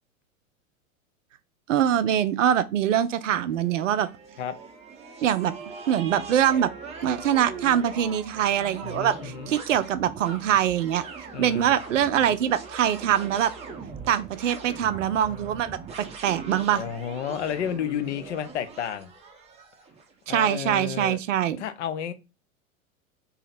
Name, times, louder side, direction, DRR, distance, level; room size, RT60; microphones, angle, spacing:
voice 1, 1.7-4.1 5.2-5.5 5.9-6.7 7.0-11.0 11.4-13.5 14.1-16.8 20.3-21.6, right 10 dB, 65° right, 0.5 m, -23 dB
sound 1, 3.0-20.1, right 4 dB, 15° right, 0.7 m, -41 dB
voice 2, 8.8-9.5 11.3-11.7 16.7-19.1 20.3-21.2 21.6-22.1, left 9 dB, 55° left, 0.6 m, -31 dB
2.8 x 2.8 x 4.0 m
figure-of-eight pair, 90°, 42 cm